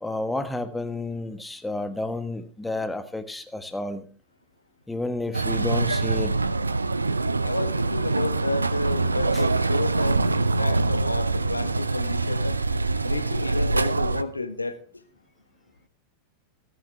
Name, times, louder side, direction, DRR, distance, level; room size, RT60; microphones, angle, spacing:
voice 1, 0.0-4.0 4.9-6.4 9.3-9.4, left 2 dB, 5° left, 10 dB, 1.3 m, -31 dB
sound 1, 5.3-14.2, right 3 dB, 80° right, 0.5 m, -24 dB
voice 2, 7.4-12.6 13.0-14.8, left 2 dB, 80° left, 11 dB, 1.2 m, -31 dB
14.5 x 13.5 x 3.3 m, 0.40 s
figure-of-eight pair, 90°, 0 cm